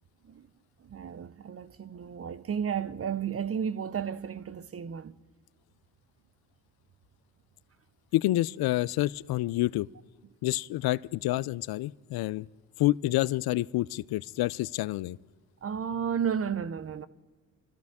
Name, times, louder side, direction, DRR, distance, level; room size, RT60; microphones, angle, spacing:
voice 1, 0.8-5.1 15.6-17.1, right 7 dB, 35° right, 0.7 m, -33 dB
voice 2, 8.1-9.9 10.4-12.5 12.8-15.2, left 17 dB, 60° left, 0.5 m, -28 dB
25.0 x 13.5 x 3.6 m
supercardioid pair, 60°, 41 cm